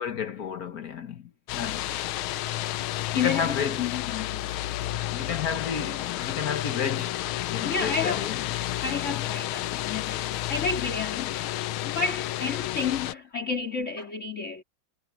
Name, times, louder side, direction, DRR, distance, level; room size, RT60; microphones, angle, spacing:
voice 1, 0.0-1.9 3.1-3.9 5.1-8.4, left 7 dB, 50° left, 1.5 m, -32 dB
sound 1, 1.5-13.1, left 15 dB, 90° left, 1.5 m, -31 dB
voice 2, 3.1-4.5 7.6-8.3 8.8-14.6, left 5 dB, 35° left, 3.1 m, -31 dB
omnidirectional pair, 2.2 m